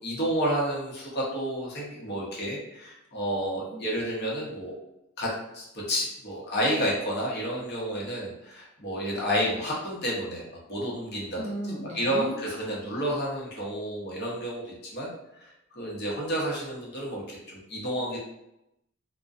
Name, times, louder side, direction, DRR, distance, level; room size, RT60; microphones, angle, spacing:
voice 1, 0.0-4.7 5.2-11.4 11.9-15.1 15.4-18.2, equal, 50° left, -4 dB, 0.7 m, -30 dB
voice 2, 11.4-12.4, right 1 dB, 30° right, -4 dB, 0.5 m, -35 dB
2.5 x 2.1 x 2.3 m, 0.86 s
head